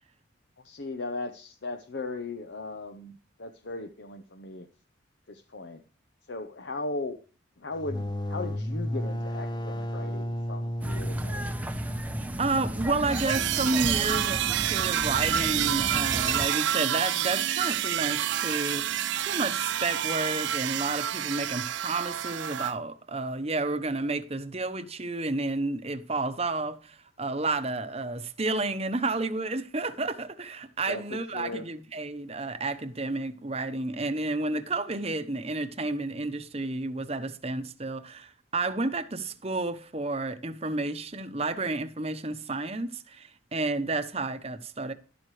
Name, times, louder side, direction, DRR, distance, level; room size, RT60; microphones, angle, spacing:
voice 1, 0.6-4.7 5.3-5.8 6.3-7.2 7.6-11.6 30.9-31.7, left 2 dB, 60° left, 0.8 m, -37 dB
sound 1, 7.7-13.3, equal, 20° left, 0.7 m, -33 dB
sound 2, 10.8-16.5, equal, 10° right, 0.8 m, -34 dB
voice 2, 12.4-44.9, right 3 dB, 30° right, 1.0 m, -31 dB
sound 3, 13.1-22.7, right 11 dB, 60° right, 0.5 m, -28 dB
12.0 x 12.0 x 3.2 m
head